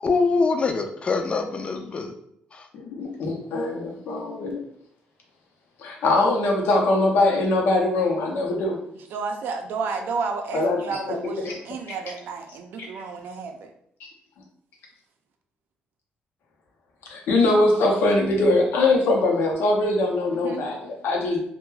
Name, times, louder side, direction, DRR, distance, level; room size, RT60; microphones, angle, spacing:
voice 1, 0.0-2.1 2.5-2.6, left 4 dB, 35° left, 6 dB, 0.3 m, -24 dB
voice 2, 2.7-4.6 5.8-8.8 10.5-11.2 11.5-11.6 17.1-21.4, left 2 dB, 85° left, 1 dB, 0.6 m, -22 dB
voice 3, 9.1-13.7 20.3-20.7, right 4 dB, 75° right, 4 dB, 0.4 m, -31 dB
2.2 x 2.2 x 3.1 m, 0.71 s
cardioid pair, 115°, 4 cm